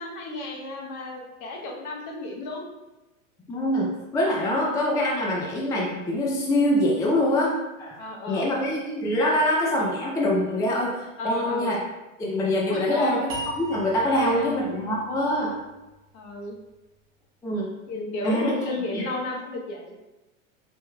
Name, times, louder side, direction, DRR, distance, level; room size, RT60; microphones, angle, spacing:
voice 1, 0.0-2.7 8.0-8.5 11.2-11.8 12.7-13.3 14.0-14.5 16.1-16.6 17.9-19.9, left 2 dB, 45° left, 0 dB, 1.0 m, -33 dB
voice 2, 3.5-7.5 7.8-8.0 8.3-11.8 12.2-13.3 13.6-15.5 17.4-17.7 18.2-18.5 18.9-19.0, left 1 dB, 10° left, -3 dB, 0.4 m, -24 dB
sound 1, 13.3-16.5, right 3 dB, 30° right, 1.1 m, -39 dB
5.0 x 3.3 x 2.3 m, 1.1 s
hypercardioid pair, 110°, 41 cm